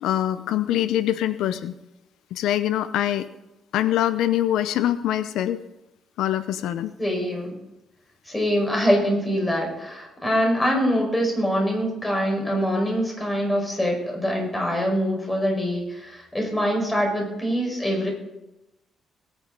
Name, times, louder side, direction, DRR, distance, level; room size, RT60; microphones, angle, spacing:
voice 1, 0.0-1.7 2.3-3.3 3.7-5.6 6.2-6.9, left 12 dB, 85° left, 12 dB, 0.7 m, -24 dB
voice 2, 7.0-7.5 8.3-18.1, equal, 10° left, 0 dB, 5.2 m, -24 dB
21.5 x 9.8 x 4.0 m, 0.94 s
cardioid pair, 135°, 0 cm